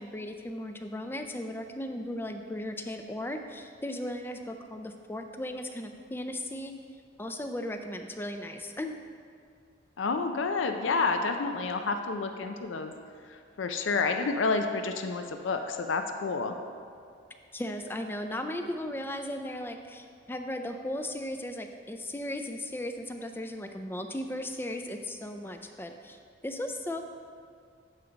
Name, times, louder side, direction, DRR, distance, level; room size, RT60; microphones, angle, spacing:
voice 1, 0.0-6.7 7.2-9.0 17.5-27.0, left 1 dB, 10° left, 6 dB, 0.3 m, -36 dB
voice 2, 10.0-12.9 13.3-16.6, left 4 dB, 80° left, 6 dB, 0.5 m, -29 dB
11.5 x 5.1 x 3.9 m, 2.3 s
head